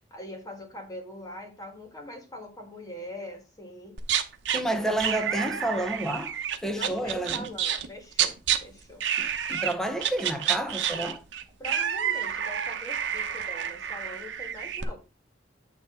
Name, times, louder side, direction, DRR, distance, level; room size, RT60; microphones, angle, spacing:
voice 1, 0.1-4.0 4.7-5.0 6.7-9.0 11.6-15.0, equal, 20° left, 1.8 m, -42 dB
sound 1, 4.0-4.6 5.0-7.9 8.1-8.6 9.0-9.7 10.0-14.8, right 9 dB, 75° right, 0.9 m, -29 dB
voice 2, 4.5-6.4 6.6-7.5 9.2-11.2, right 1 dB, 5° left, 0.9 m, -30 dB
9.1 x 3.2 x 5.5 m
head